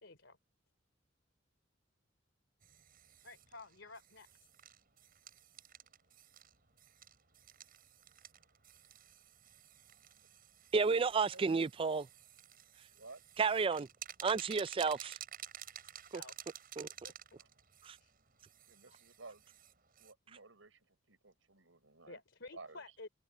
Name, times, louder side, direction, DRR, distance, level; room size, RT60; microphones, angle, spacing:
voice 1, 0.0-0.4 3.2-4.5 16.1-16.5 17.0-17.1 18.0-18.1 18.9-19.0 22.1-23.1, left 3 dB, 70° left, 3.5 m, -52 dB
sound 1, 2.6-20.1, right 10 dB, 50° right, 7.9 m, -54 dB
voice 2, 10.7-12.1 13.4-13.9 14.2-15.2 16.1-16.2 16.8-16.9 17.8-18.0, right 5 dB, 30° right, 0.4 m, -31 dB
voice 3, 12.9-13.2 17.4-17.5 18.7-19.4 20.0-22.2 22.5-22.8, right 3 dB, 90° right, 5.6 m, -55 dB
head